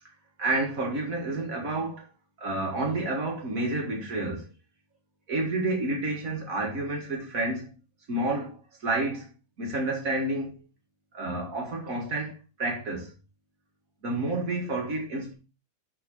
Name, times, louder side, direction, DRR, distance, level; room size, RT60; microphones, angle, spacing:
voice 1, 0.4-2.0 2.4-4.5 5.3-7.7 8.1-9.3 9.6-10.5 11.1-13.1 14.0-15.3, right 2 dB, 75° right, 2.4 m, -29 dB
8.5 x 4.0 x 5.4 m
omnidirectional pair, 1.5 m